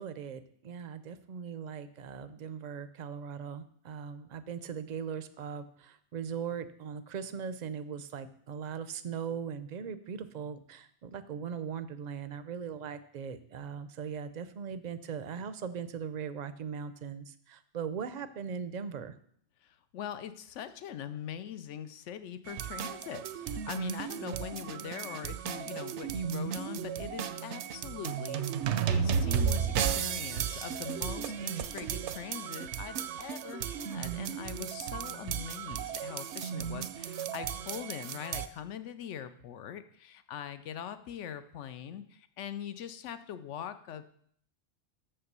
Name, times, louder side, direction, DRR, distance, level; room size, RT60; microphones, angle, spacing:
voice 1, 0.0-19.1, right 7 dB, 55° right, 13 dB, 0.5 m, -39 dB
voice 2, 19.6-28.4 28.9-44.0, left 9 dB, 80° left, 11 dB, 1.0 m, -42 dB
sound 1, 22.5-38.5, right 8 dB, 75° right, 0.8 m, -34 dB
6.9 x 5.7 x 6.7 m, 0.64 s
omnidirectional pair, 1.2 m